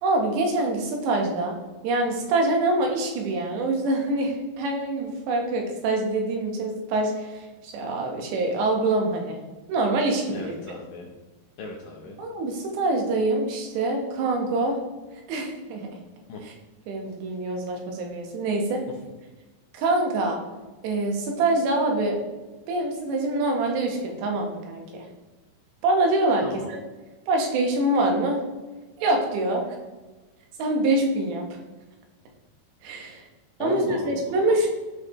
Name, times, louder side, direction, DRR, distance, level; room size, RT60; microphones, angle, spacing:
voice 1, 0.0-1.6 1.8-9.4 9.7-10.5 12.2-14.8 15.1-15.9 16.4-16.5 16.9-18.8 19.7-20.4 20.8-22.2 22.7-25.1 25.8-26.8 27.3-28.4 29.0-29.6 30.6-31.5 32.8-33.2 33.6-34.8, right 2 dB, 85° right, 1 dB, 3.5 m, -25 dB
voice 2, 10.3-11.1 11.6-12.2 16.3-16.4 26.4-26.7 33.6-34.3, left 3 dB, 75° left, 0 dB, 2.1 m, -36 dB
13.0 x 5.4 x 3.1 m, 1.2 s
omnidirectional pair, 4.9 m